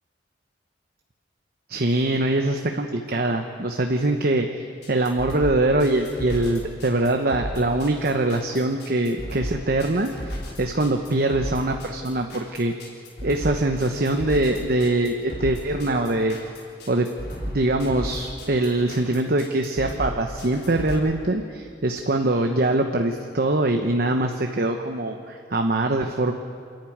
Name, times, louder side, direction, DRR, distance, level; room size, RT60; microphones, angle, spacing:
voice 1, 1.7-12.7 13.2-16.4 16.9-17.1 17.5-26.3, right 2 dB, 55° right, 4 dB, 1.0 m, -23 dB
sound 1, 4.8-20.9, equal, 60° left, 4.0 m, -34 dB
27.5 x 10.5 x 9.2 m, 2.4 s
head